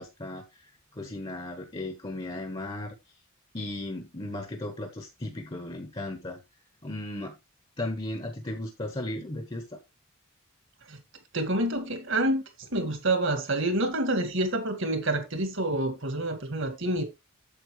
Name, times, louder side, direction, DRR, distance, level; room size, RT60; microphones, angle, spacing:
voice 1, 0.0-2.9 3.5-6.4 6.8-7.4 7.8-9.8, left 1 dB, 25° left, 1.1 m, -36 dB
voice 2, 11.3-12.4 12.7-17.0, right 1 dB, 60° right, 2.1 m, -27 dB
8.6 x 7.4 x 3.2 m
head